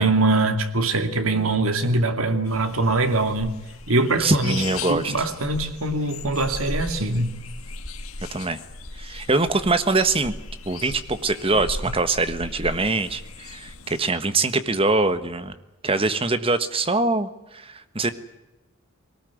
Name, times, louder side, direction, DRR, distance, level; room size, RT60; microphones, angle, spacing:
voice 1, 0.0-3.6 3.9-4.6 4.9-7.3, right 2 dB, 80° right, 2.4 m, -23 dB
sound 1, 2.5-14.0, left 2 dB, 85° left, 2.2 m, -37 dB
voice 2, 4.2-5.2 8.3-8.6 9.0-10.3 10.7-15.5 15.8-18.1, right 3 dB, 25° right, 1.4 m, -23 dB
22.0 x 19.0 x 9.4 m
head